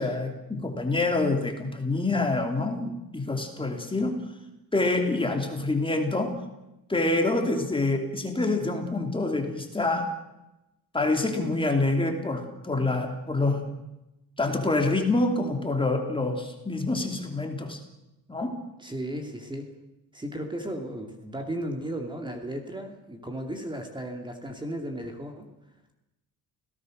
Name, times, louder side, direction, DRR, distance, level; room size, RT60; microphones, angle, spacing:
voice 1, 0.0-4.1 4.7-6.3 6.9-10.1 10.9-13.6 14.4-17.8 18.3-18.5, left 2 dB, 15° left, 4 dB, 2.8 m, -26 dB
voice 2, 18.8-19.7 20.1-25.5, right 1 dB, 10° right, 4 dB, 2.7 m, -35 dB
28.5 x 17.5 x 6.5 m, 0.94 s
cardioid pair, 150°, 37 cm